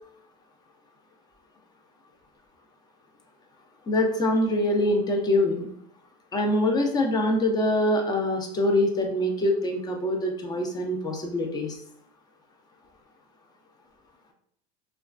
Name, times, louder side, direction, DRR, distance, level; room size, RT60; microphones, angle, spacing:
voice 1, 3.9-5.7 6.3-11.7, left 1 dB, 20° left, 3 dB, 0.5 m, -24 dB
3.1 x 2.3 x 2.4 m, 0.69 s
supercardioid pair, 120°, 19 cm